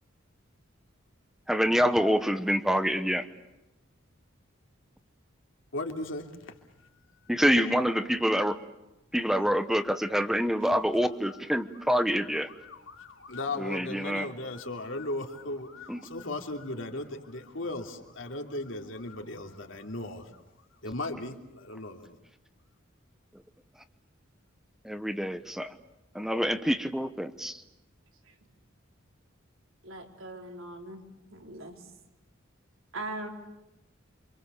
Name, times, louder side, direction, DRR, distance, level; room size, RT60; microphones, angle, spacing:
voice 1, 1.5-3.3 7.3-8.6 9.1-12.5 13.6-14.3 15.9-16.0 24.8-25.7 26.1-27.6, equal, ahead, 10 dB, 1.1 m, -26 dB
voice 2, 5.7-6.5 7.4-8.0 12.5-20.3 20.8-22.1, left 2 dB, 70° left, 3 dB, 3.0 m, -37 dB
voice 3, 29.8-31.0 31.3-31.9 32.9-33.3, right 2 dB, 85° right, 3 dB, 4.0 m, -40 dB
28.5 x 25.5 x 7.0 m, 0.92 s
head